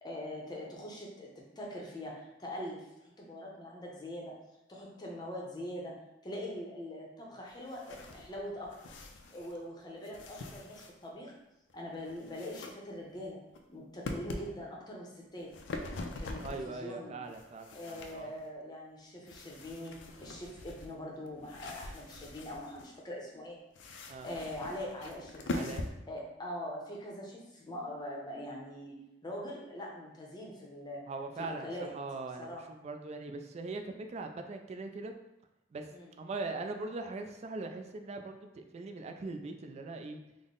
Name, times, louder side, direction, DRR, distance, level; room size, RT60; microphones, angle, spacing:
voice 1, 0.0-1.3 1.6-4.3 4.7-6.0 6.2-8.8 9.3-11.3 11.7-13.4 13.7-15.5 16.2-17.2 17.7-23.6 24.2-25.7 26.1-31.0 31.4-31.9 32.4-32.6 35.9-36.1, left 1 dB, 25° left, -2 dB, 0.7 m, -42 dB
sound 1, 7.5-9.7 10.0-11.2 11.7-12.7 13.1-13.6 14.0-14.5 15.3-16.8 17.2-18.5 19.2-22.9 23.7-25.9, left 2 dB, 90° left, 0.4 m, -43 dB
voice 2, 16.4-18.3 24.1-24.3 25.5-25.8 31.1-35.1 35.7-35.9 36.2-40.2, right 3 dB, 35° right, 5 dB, 0.3 m, -41 dB
3.6 x 2.0 x 3.7 m, 0.92 s
head